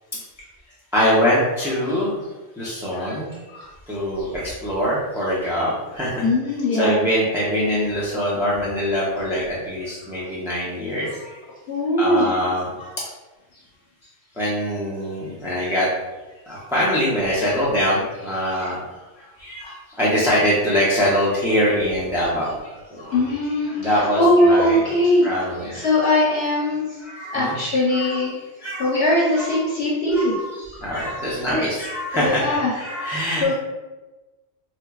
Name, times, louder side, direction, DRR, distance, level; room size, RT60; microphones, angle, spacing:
voice 1, 0.9-2.3 2.6-3.3 3.9-6.3 6.7-11.1 12.0-12.7 14.3-15.9 16.5-18.8 19.4-22.6 22.9-23.2 23.8-24.8 25.2-26.0 27.0-27.6 27.9-28.3 28.6-29.0 29.3-29.7 30.1-30.5 30.8-33.5, equal, 5° right, -8 dB, 0.3 m, -23 dB
voice 2, 2.9-3.7 5.5-5.7 6.2-7.0 10.1-10.2 11.2-11.3 11.7-12.3 12.8-12.9 19.2-19.3 19.6-19.8 23.0-25.3 25.6-31.1 32.1-33.5, left 1 dB, 60° left, -5 dB, 0.9 m, -21 dB
4.4 x 2.4 x 2.3 m, 1.1 s
omnidirectional pair, 1.3 m